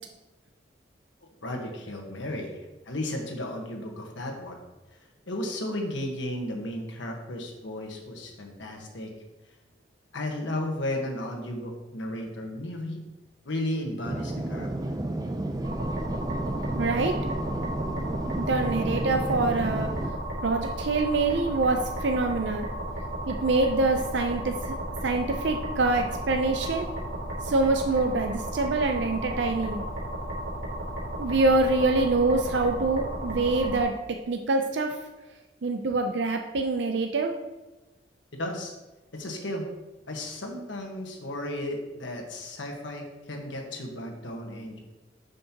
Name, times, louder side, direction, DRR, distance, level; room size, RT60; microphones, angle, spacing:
voice 1, 1.4-2.5 2.8-4.6 5.3-9.1 10.1-13.0 13.4-14.7 38.3-38.7 39.1-39.6 40.1-44.8, left 1 dB, 85° left, 2 dB, 1.3 m, -34 dB
sound 1, 14.0-20.1, right 1 dB, 20° right, 0.4 m, -31 dB
sound 2, 15.6-33.8, right 1 dB, 90° right, 2.5 m, -34 dB
voice 2, 16.8-17.2 18.4-19.9 20.4-22.7 23.3-24.8 25.0-26.9 27.4-29.8 31.2-33.9 34.3-35.0 35.6-37.3, right 3 dB, 70° right, 4 dB, 0.5 m, -25 dB
9.6 x 5.3 x 2.9 m, 1.1 s
head